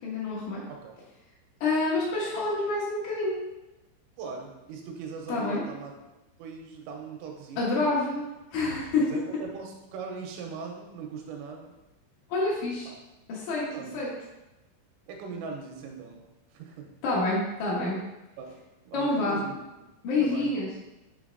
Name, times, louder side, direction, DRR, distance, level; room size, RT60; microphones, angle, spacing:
voice 1, 0.0-0.6 1.6-3.4 5.3-5.6 7.6-8.2 8.5-9.0 12.3-12.9 13.3-13.7 13.9-14.1 17.0-18.0 18.9-19.4 20.0-20.7, left 3 dB, 80° left, -7 dB, 1.7 m, -27 dB
voice 2, 4.2-5.9 6.4-8.0 9.0-11.7 12.9-13.0 13.7-13.9 15.1-16.2 16.5-16.9 18.4-18.5 18.9-19.6 20.2-20.5, right 5 dB, 85° right, 2 dB, 3.4 m, -39 dB
9.5 x 3.4 x 4.0 m, 0.98 s
omnidirectional pair, 5.9 m